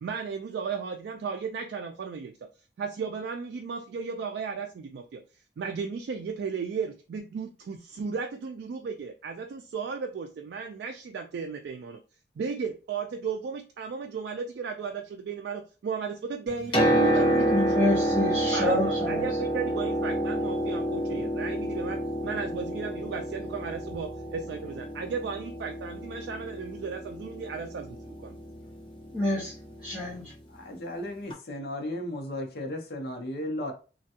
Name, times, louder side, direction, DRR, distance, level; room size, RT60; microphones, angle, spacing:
voice 1, 0.0-2.5 2.8-5.2 5.6-12.0 12.4-17.7 18.5-28.4, right 5 dB, 75° right, 5 dB, 0.3 m, -35 dB
Piano, 16.5-30.2 31.3-31.4, right 1 dB, 25° left, 0.7 m, -29 dB
voice 2, 17.5-19.3 29.1-29.5 29.8-30.3, left 1 dB, 5° right, -9 dB, 1.0 m, -27 dB
voice 3, 30.5-33.7, left 1 dB, 60° left, 2 dB, 0.6 m, -35 dB
3.3 x 2.2 x 2.7 m, 0.34 s
head